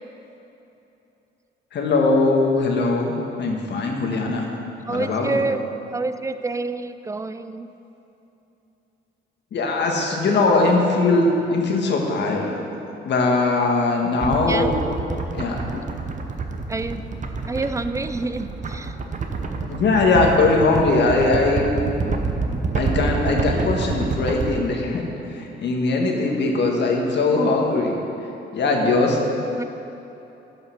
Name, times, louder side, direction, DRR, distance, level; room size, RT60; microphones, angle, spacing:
voice 1, 1.7-3.1 3.4-4.5 4.9-5.4 9.5-12.6 13.0-14.7 15.3-15.8 19.7-21.8 22.7-25.0 25.3-28.0 28.5-29.2, left 3 dB, 60° left, 0 dB, 1.6 m, -20 dB
voice 2, 4.9-5.6 5.9-7.7 14.5-14.7 16.7-17.0 17.5-18.9 29.6-29.7, right 3 dB, 15° right, 11 dB, 0.4 m, -27 dB
sound 1, 14.2-24.5, right 4 dB, 40° right, 0.8 m, -27 dB
11.0 x 5.6 x 5.8 m, 3.0 s
cardioid pair, 90°, 20 cm